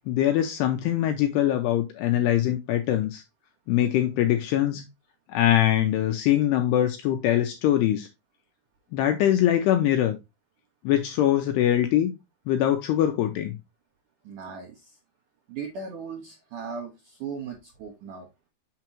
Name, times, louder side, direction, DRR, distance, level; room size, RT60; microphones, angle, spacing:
voice 1, 0.1-3.2 3.7-4.8 5.3-8.1 8.9-10.2 10.8-12.1 12.5-13.5, left 12 dB, 80° left, 2.4 m, -23 dB
voice 2, 14.2-15.0 15.5-18.3, right 5 dB, 75° right, 1.8 m, -38 dB
6.7 x 5.8 x 2.9 m
omnidirectional pair, 5.3 m